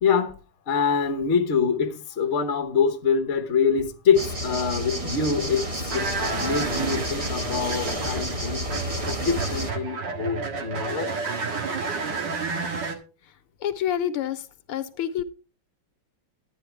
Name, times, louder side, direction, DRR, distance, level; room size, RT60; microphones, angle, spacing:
voice 1, 0.0-0.3 0.7-6.1 6.4-11.1, left 6 dB, 40° left, 1.2 m, -25 dB
sound 1, 4.1-9.7, equal, 20° right, 1.2 m, -30 dB
sound 2, 5.9-12.9, right 4 dB, 60° right, 2.1 m, -31 dB
voice 2, 13.6-15.2, left 10 dB, 80° left, 1.7 m, -28 dB
11.5 x 9.6 x 3.3 m
omnidirectional pair, 2.3 m